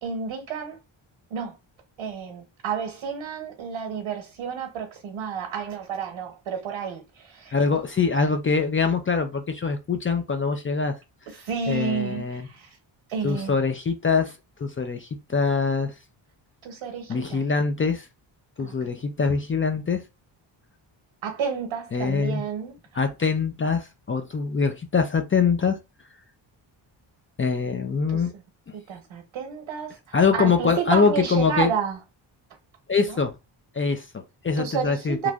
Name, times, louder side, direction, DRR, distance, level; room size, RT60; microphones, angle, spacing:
voice 1, 0.0-0.8 1.3-1.6 2.0-7.5 11.3-12.7 13.1-13.5 16.6-17.4 18.6-18.7 21.2-22.8 28.1-28.2 28.7-30.0 30.3-32.0 33.1-33.2 34.6-35.3, right 6 dB, 85° right, 1.0 m, -30 dB
voice 2, 7.5-11.0 11.7-12.5 13.2-14.3 14.6-15.9 17.1-18.1 18.6-20.0 21.9-22.4 22.9-25.8 27.4-28.3 30.1-31.7 32.9-33.3 33.7-35.3, left 5 dB, 30° left, 0.4 m, -24 dB
3.1 x 2.5 x 2.3 m
cardioid pair, 95°, 48 cm